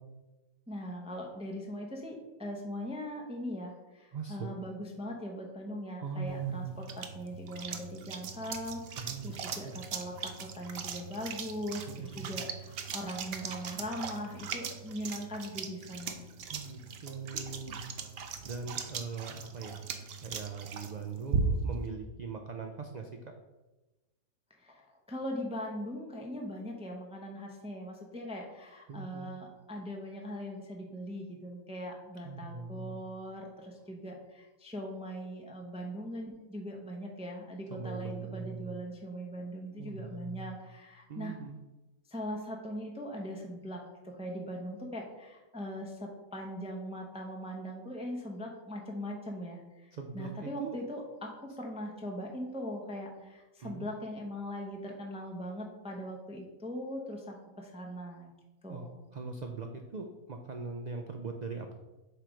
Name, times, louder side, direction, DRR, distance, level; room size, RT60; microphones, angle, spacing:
voice 1, 0.7-16.2 24.6-41.3 42.1-58.3 58.6-58.9, equal, 5° right, 0 dB, 0.6 m, -40 dB
voice 2, 4.1-4.5 6.0-6.8 9.0-9.3 9.6-9.8 11.9-12.4 16.5-17.8 18.4-19.8 20.2-23.3 28.9-29.3 32.2-33.0 37.7-38.8 39.8-40.6 41.1-41.6 49.9-50.8 53.2-53.3 53.6-53.9 58.7-58.9 59.1-61.7, right 5 dB, 90° right, 3 dB, 0.3 m, -40 dB
sound 1, 6.3-21.8, right 5 dB, 55° right, 0.7 m, -39 dB
7.4 x 3.3 x 5.0 m, 1.1 s
omnidirectional pair, 1.4 m